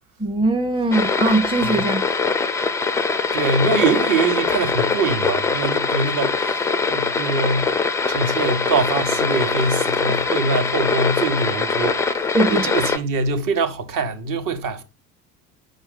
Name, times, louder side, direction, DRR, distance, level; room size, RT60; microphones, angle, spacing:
voice 1, 0.2-2.0 12.3-12.7, right 2 dB, 10° right, 0.8 m, -20 dB
sound 1, 0.9-13.0, left 4 dB, 5° left, 0.3 m, -22 dB
voice 2, 3.3-7.7 8.1-14.8, right 3 dB, 45° right, 1.1 m, -23 dB
5.5 x 5.1 x 3.8 m
figure-of-eight pair, 65°, 48 cm